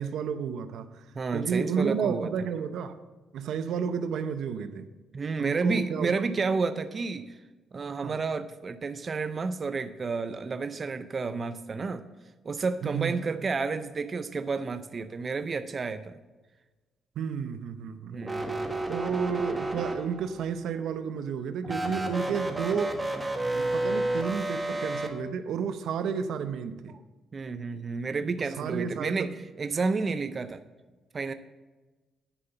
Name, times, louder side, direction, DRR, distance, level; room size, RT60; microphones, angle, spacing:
voice 1, 0.0-1.0 1.3-3.0 3.3-4.9 5.4-6.1 8.0-8.2 12.8-13.2 17.2-18.5 18.9-23.0 23.5-26.9 28.6-29.3, right 6 dB, 75° right, 10 dB, 0.6 m, -31 dB
voice 2, 1.1-2.3 5.1-7.4 7.7-12.1 12.4-16.2 18.1-18.7 27.3-29.3 29.6-30.6 31.1-31.3, right 4 dB, 40° right, 11 dB, 0.5 m, -31 dB
sound 1, 18.2-20.4 21.6-25.1, right 2 dB, 15° right, 1.3 m, -31 dB
9.8 x 5.5 x 7.0 m, 1.2 s
cardioid pair, 90°, 0 cm